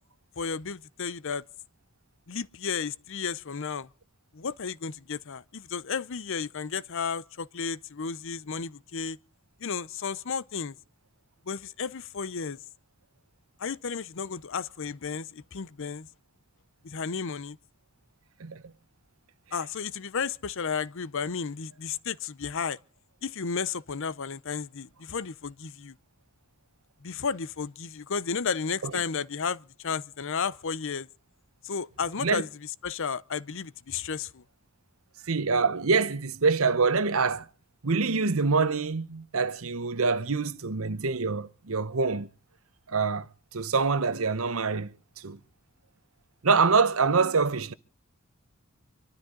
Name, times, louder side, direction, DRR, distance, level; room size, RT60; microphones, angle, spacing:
voice 1, 0.4-1.4 2.3-3.9 4.3-9.2 9.6-10.7 11.5-12.6 13.6-16.1 16.8-17.6 19.5-22.8 23.2-25.9 27.0-31.1 31.6-34.4, left 6 dB, 65° left, 0.7 m, -33 dB
voice 2, 35.3-37.5 37.8-42.3 42.9-43.2 43.5-44.9 45.2-45.4 46.4-47.7, right 4 dB, 70° right, 0.9 m, -25 dB
25.5 x 13.0 x 3.9 m
head